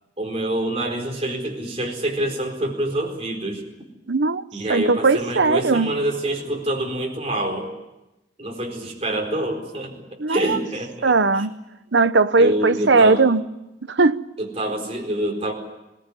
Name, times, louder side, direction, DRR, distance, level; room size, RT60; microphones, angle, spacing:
voice 1, 0.2-3.6 4.5-7.7 8.4-11.5 12.4-13.2 14.4-15.5, right 1 dB, 35° right, 4.3 m, -26 dB
voice 2, 4.1-4.4 4.7-5.9 10.2-10.6 11.0-11.5 11.9-13.4 13.9-14.2, right 3 dB, 75° right, 0.9 m, -18 dB
22.0 x 19.0 x 9.8 m
head